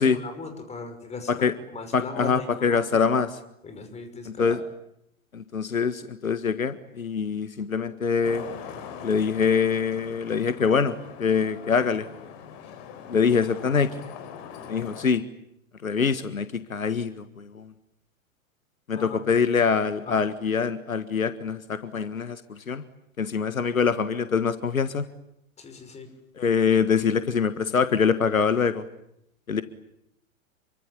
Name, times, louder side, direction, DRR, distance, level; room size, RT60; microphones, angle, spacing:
voice 1, 0.0-1.4 1.7-3.1 3.6-4.7 18.9-19.2 19.4-19.6 20.0-20.2 25.6-26.1, left 3 dB, 15° left, 7 dB, 5.7 m, -38 dB
voice 2, 1.9-3.3 4.4-4.6 5.3-8.5 9.0-12.1 13.1-13.9 14.7-15.2 15.8-17.7 18.9-22.8 23.2-25.1 26.4-28.9 29.5-29.6, left 6 dB, 75° left, 12 dB, 1.7 m, -24 dB
Traffic noise roadway noise, 8.2-15.1, left 8 dB, 40° left, 3.8 m, -42 dB
28.0 x 24.5 x 8.5 m, 0.78 s
figure-of-eight pair, 105°, 41 cm